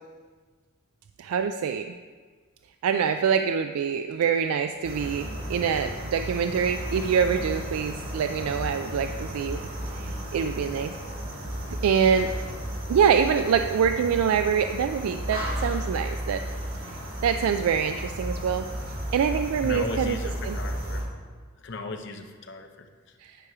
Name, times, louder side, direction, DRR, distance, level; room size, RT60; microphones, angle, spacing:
voice 1, 1.2-1.9 2.8-10.9 11.8-12.3 12.9-16.4 17.2-18.7 19.1-20.2 20.4-20.5 23.2-23.4, right 7 dB, 90° right, 8 dB, 0.3 m, -25 dB
sound 1, 4.8-21.0, equal, 70° right, 2.2 m, -34 dB
voice 2, 19.6-21.1 21.6-23.2, left 3 dB, 55° left, 5 dB, 0.7 m, -36 dB
9.9 x 4.7 x 4.8 m, 1.5 s
head